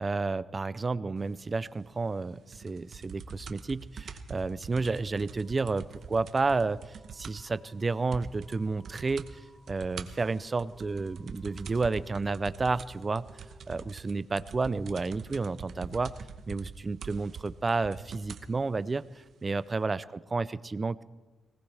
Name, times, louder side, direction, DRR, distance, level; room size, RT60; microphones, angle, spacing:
voice 1, 0.0-9.4 9.7-13.2 13.7-16.1 16.5-20.0 20.3-21.0, right 3 dB, 25° right, 17 dB, 0.4 m, -31 dB
sound 1, 2.5-7.5 7.8-7.9 8.1-8.6 8.8-9.3 9.7-18.5 19.3-19.4, right 6 dB, 65° right, 0.9 m, -44 dB
sound 2, 4.1-18.6, equal, 25° left, 7.3 m, -62 dB
20.5 x 19.5 x 3.4 m, 1.2 s
wide cardioid pair, 140°, 0 cm